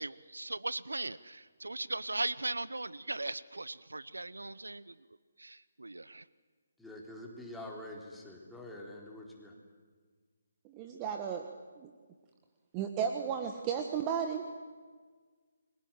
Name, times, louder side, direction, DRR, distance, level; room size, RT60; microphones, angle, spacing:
voice 1, 0.0-4.8 5.4-6.2, right 2 dB, 80° right, 18 dB, 0.8 m, -38 dB
voice 2, 6.8-9.5, left 1 dB, 5° left, -2 dB, 4.0 m, -46 dB
voice 3, 10.6-11.5 11.8-11.9 12.7-14.4, right 7 dB, 20° right, 5 dB, 1.5 m, -34 dB
30.0 x 22.0 x 7.6 m, 1.5 s
figure-of-eight pair, 145°, 0 cm